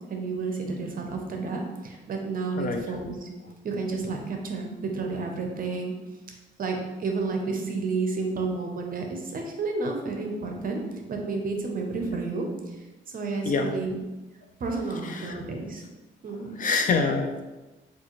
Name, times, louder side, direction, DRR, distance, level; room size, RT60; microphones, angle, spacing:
voice 1, 0.1-3.3 3.6-5.9 6.6-10.8 11.1-12.5 13.1-14.0 14.6-15.8 16.2-16.6, right 3 dB, 45° right, 2 dB, 0.7 m, -31 dB
voice 2, 15.0-15.4 16.6-17.4, left 4 dB, 45° left, 5 dB, 0.4 m, -26 dB
3.5 x 2.5 x 3.0 m, 1.1 s
cardioid pair, 90°, 20 cm